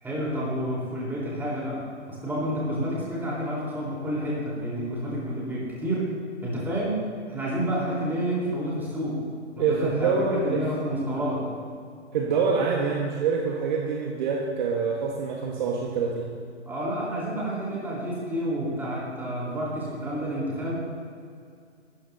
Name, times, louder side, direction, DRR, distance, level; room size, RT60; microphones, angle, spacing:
voice 1, 0.0-6.1 6.4-9.2 9.6-11.5 16.7-20.7, equal, 5° right, -6 dB, 3.7 m, -29 dB
voice 2, 9.6-10.9 12.1-16.3, right 5 dB, 40° right, -1 dB, 1.4 m, -26 dB
18.0 x 13.0 x 2.7 m, 2.3 s
hypercardioid pair, 140°, 34 cm